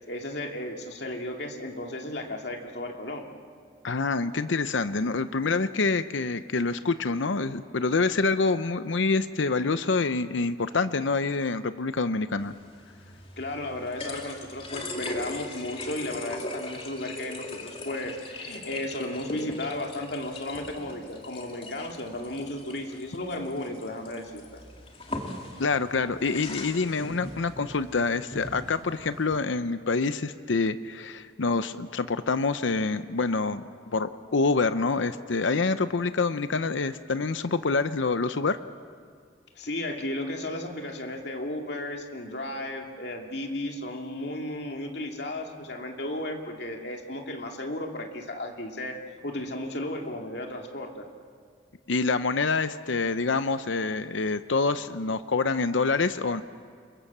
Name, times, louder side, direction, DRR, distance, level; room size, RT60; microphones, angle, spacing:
voice 1, 0.0-3.3 13.4-24.6 39.5-51.1, left 1 dB, 60° left, 2 dB, 2.6 m, -34 dB
voice 2, 3.8-12.5 25.6-33.6 33.9-38.6 51.9-56.4, left 4 dB, 80° left, 11 dB, 0.7 m, -26 dB
sound 1, 12.4-29.4, left 2 dB, 30° left, 2.5 m, -40 dB
29.5 x 23.0 x 7.3 m, 2.1 s
head